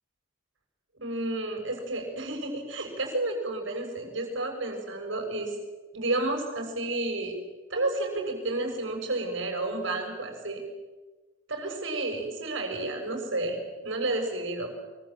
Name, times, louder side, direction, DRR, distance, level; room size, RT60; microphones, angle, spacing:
voice 1, 1.0-5.5 5.9-7.3 7.7-10.6 11.5-13.6 13.8-14.7, right 2 dB, 65° right, 3 dB, 6.8 m, -31 dB
24.5 x 23.5 x 7.7 m, 1.2 s
head